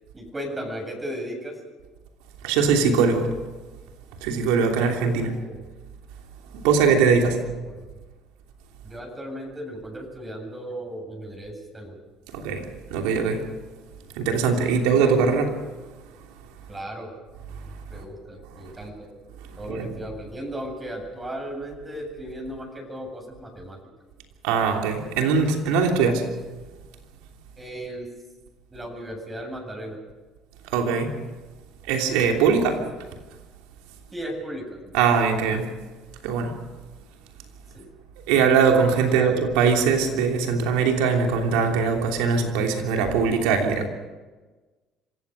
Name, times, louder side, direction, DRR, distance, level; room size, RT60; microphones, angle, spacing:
voice 1, 0.1-1.6 4.8-5.6 7.6-7.9 8.8-12.0 16.7-17.1 17.9-19.1 19.6-23.8 27.6-28.1 28.7-30.0 34.1-34.8 37.7-37.9 39.1-39.4, equal, 20° right, 7.8 m, -36 dB
voice 2, 2.4-3.4 4.2-5.3 6.5-7.4 12.3-13.5 14.1-15.6 17.5-18.0 18.5-18.7 19.5-19.9 24.4-26.4 30.6-31.2 31.9-32.9 34.9-35.8 36.2-36.6 38.3-43.9, right 5 dB, 90° right, 3.1 m, -22 dB
26.5 x 16.5 x 6.6 m
supercardioid pair, 85°, 0 cm